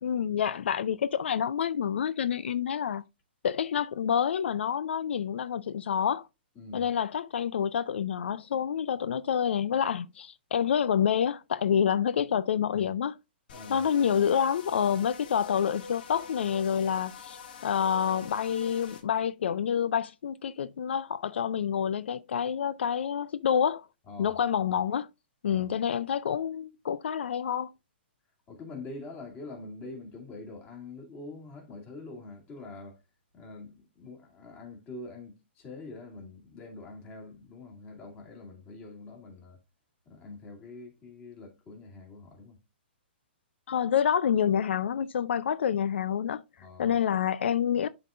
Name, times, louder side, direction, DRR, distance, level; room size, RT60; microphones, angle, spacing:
voice 1, 0.0-3.0 3.4-6.3 6.7-13.2 13.7-17.4 17.6-23.9 24.2-25.1 25.4-27.7 43.7-46.4 46.8-47.9, left 8 dB, 75° left, 0.4 m, -28 dB
voice 2, 6.6-6.9 13.5-13.8 24.1-24.4 25.4-25.7 28.5-33.0 33.3-39.6 40.1-42.6 46.6-46.9, left 3 dB, 20° left, 2.3 m, -45 dB
sound 1, 13.5-19.0, left 5 dB, 55° left, 1.6 m, -45 dB
11.5 x 3.8 x 2.5 m
hypercardioid pair, 155°, 6 cm